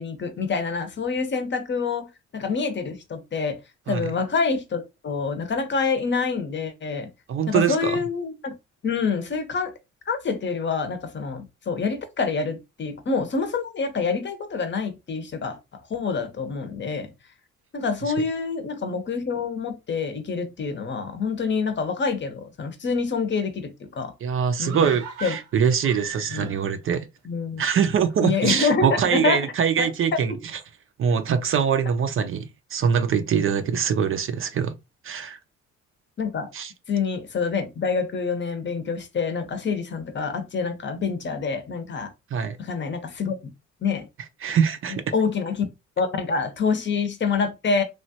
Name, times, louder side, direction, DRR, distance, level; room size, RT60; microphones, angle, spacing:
voice 1, 0.0-3.6 3.9-7.1 7.5-8.5 8.8-9.7 10.1-15.6 15.9-17.1 17.7-24.1 24.6-24.9 25.2-25.3 26.3-26.5 27.2-27.6 28.2-29.5 29.8-30.4 36.2-36.5 36.9-42.1 42.6-43.4 43.8-44.1 44.9-45.7 46.0-47.8, left 5 dB, 40° left, 0.7 m, -26 dB
voice 2, 7.3-8.0 24.2-27.1 27.6-30.3 31.0-34.8 35.0-35.4 36.5-36.7 42.3-42.6 44.4-45.0, right 7 dB, 45° right, 0.4 m, -23 dB
sound 1, 24.6-26.9 27.2-27.3, right 6 dB, 80° right, 0.8 m, -38 dB
3.0 x 2.3 x 2.7 m
cardioid pair, 90°, 30 cm